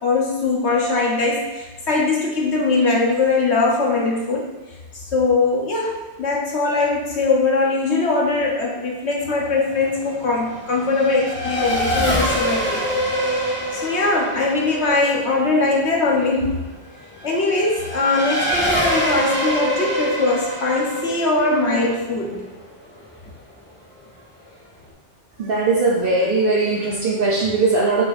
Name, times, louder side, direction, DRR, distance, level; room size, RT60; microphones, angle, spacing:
voice 1, 0.0-4.5 4.9-12.9 13.3-16.6 17.2-22.5, left 3 dB, 70° left, -2 dB, 1.5 m, -21 dB
Race car auto racing / Accelerating revving vroom, 9.2-23.3, equal, 10° left, 1.5 m, -26 dB
voice 2, 25.4-28.0, right 3 dB, 55° right, -3 dB, 0.9 m, -19 dB
6.1 x 5.8 x 2.7 m, 1.2 s
omnidirectional pair, 1.2 m